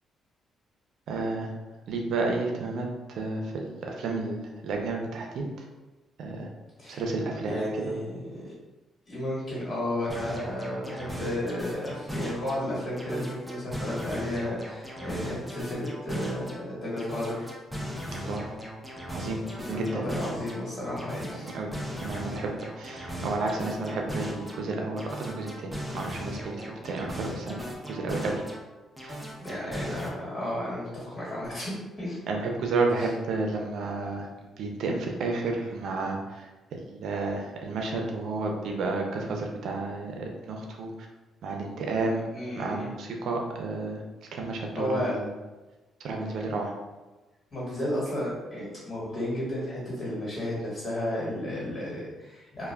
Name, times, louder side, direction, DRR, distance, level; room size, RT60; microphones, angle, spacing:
voice 1, 1.1-1.5 1.9-5.5 6.2-6.5 6.9-7.6 18.1-18.5 19.1-20.0 21.4-21.7 22.0-28.4 29.0-29.2 29.5-29.6 32.3-34.3 34.6-36.5 36.8-40.9 41.4-42.2 42.6-44.0 44.3-45.3 46.0-46.7, right 3 dB, 70° right, 1 dB, 0.5 m, -31 dB
voice 2, 7.5-8.5 9.1-17.5 19.6-21.5 29.4-32.2 33.0-33.1 42.3-42.9 44.7-45.2 46.6-46.7 47.5-52.7, left 1 dB, 30° left, -7 dB, 1.4 m, -33 dB
sound 1, 10.1-12.6 13.0-16.6 17.0-20.6 21.0-24.6 25.0-28.6 29.0-30.1, equal, ahead, 0.5 m, -38 dB
2.3 x 2.2 x 3.3 m, 1.2 s
cardioid pair, 90°, 0 cm